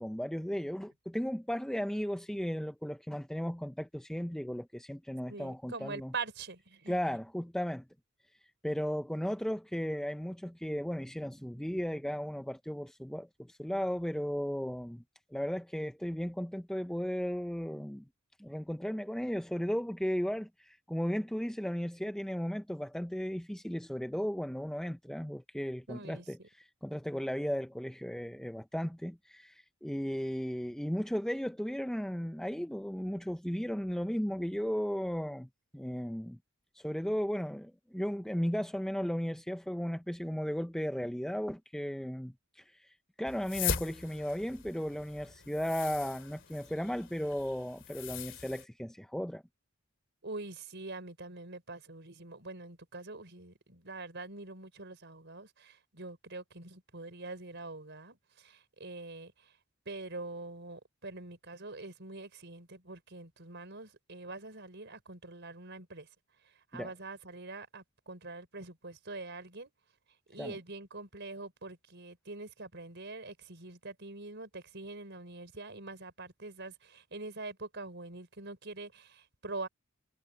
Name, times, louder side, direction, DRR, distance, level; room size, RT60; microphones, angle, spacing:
voice 1, 0.0-6.1 6.9-7.9 8.6-15.0 15.3-18.1 18.4-36.4 36.7-49.4 66.7-66.9 70.4-70.6, equal, 5° left, 0.5 m, -35 dB
voice 2, 5.3-6.9 25.9-26.2 50.2-59.3 59.8-66.1 66.7-69.7 70.3-79.7, right 3 dB, 55° right, 5.1 m, -44 dB
sound 1, 43.3-48.6, left 7 dB, 60° left, 2.8 m, -40 dB
head